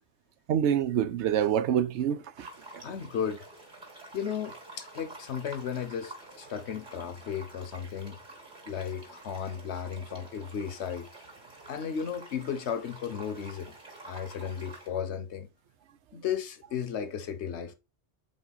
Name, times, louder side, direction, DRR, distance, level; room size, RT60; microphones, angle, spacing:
voice 1, 0.5-2.5, right 9 dB, 85° right, 0.9 m, -26 dB
sound 1, 2.4-14.9, right 2 dB, 40° right, 2.6 m, -49 dB
voice 2, 2.8-3.4 4.1-8.2 8.7-11.1 11.7-13.7 14.1-15.5 16.1-17.7, left 7 dB, 75° left, 1.1 m, -34 dB
5.3 x 4.4 x 4.0 m
omnidirectional pair, 1.1 m